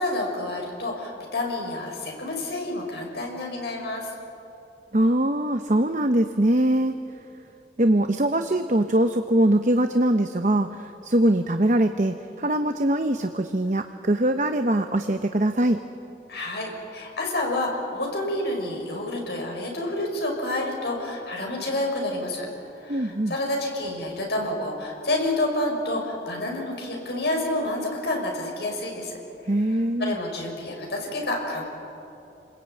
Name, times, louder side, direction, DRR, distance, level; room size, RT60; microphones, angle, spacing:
voice 1, 0.0-4.1 16.3-22.5 22.8-29.2 29.7-31.7, left 1 dB, 70° left, 0 dB, 6.1 m, -29 dB
voice 2, 4.9-7.0 7.8-15.8 22.9-23.3 29.5-30.2, right 1 dB, 45° right, 7 dB, 0.9 m, -22 dB
29.0 x 21.0 x 9.1 m, 2.7 s
head